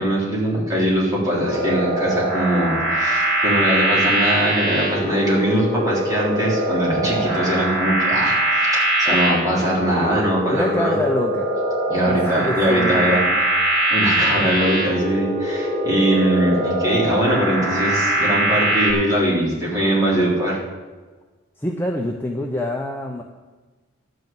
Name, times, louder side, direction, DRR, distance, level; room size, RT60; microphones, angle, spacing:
voice 1, 0.0-11.0 11.9-13.5 13.9-20.6, right 1 dB, 15° right, -6 dB, 3.7 m, -21 dB
sound 1, 1.4-18.9, right 1 dB, 40° right, 4.9 m, -22 dB
voice 2, 10.5-11.5 12.0-13.3 21.6-23.2, left 1 dB, 10° left, 1 dB, 0.7 m, -26 dB
12.0 x 6.5 x 8.5 m, 1.3 s
head